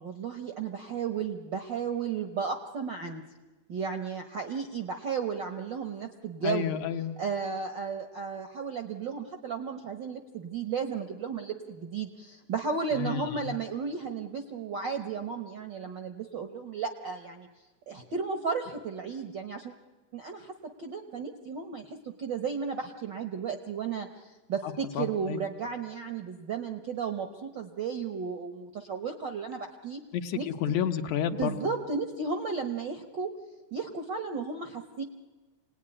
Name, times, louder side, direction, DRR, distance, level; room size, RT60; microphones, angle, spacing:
voice 1, 0.0-3.2 3.7-6.8 7.2-17.5 17.9-19.7 20.1-30.0 30.4-30.5 31.3-33.3 33.7-35.0, right 5 dB, 60° right, 6 dB, 1.2 m, -34 dB
voice 2, 6.4-7.2 12.9-13.5 24.6-25.4 30.1-31.6, left 9 dB, 70° left, 7 dB, 2.3 m, -31 dB
27.0 x 19.0 x 9.8 m, 1.2 s
omnidirectional pair, 3.6 m